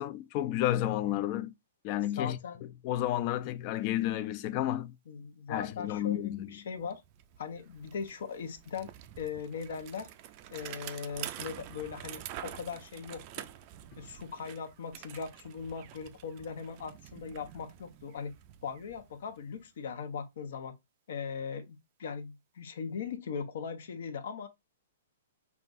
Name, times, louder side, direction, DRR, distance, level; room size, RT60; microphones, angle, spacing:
voice 1, 0.0-1.5 1.8-2.4 2.8-4.9 5.5-6.5, left 13 dB, 35° left, 0.4 m, -31 dB
voice 2, 2.2-2.6 5.1-7.0 7.4-10.1 10.5-13.5 14.0-18.3 18.6-20.7 21.1-24.5, left 6 dB, 65° left, 0.9 m, -39 dB
Bicycle, 6.4-6.5 6.8-19.7, right 12 dB, 35° right, 0.4 m, -47 dB
5.8 x 2.4 x 2.6 m
hypercardioid pair, 155°, 0 cm